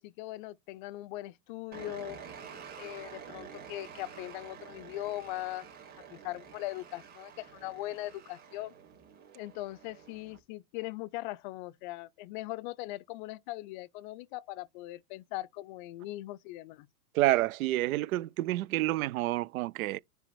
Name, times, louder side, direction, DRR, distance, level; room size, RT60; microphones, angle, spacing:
voice 1, 0.0-2.2 2.8-5.7 6.1-8.7 9.4-16.9, left 17 dB, 35° left, 0.4 m, -40 dB
sound 1, 1.7-10.4, right 7 dB, 20° right, 3.4 m, -49 dB
voice 2, 17.1-20.0, right 16 dB, 70° right, 0.6 m, -28 dB
9.9 x 3.5 x 4.5 m
hypercardioid pair, 130°, 43 cm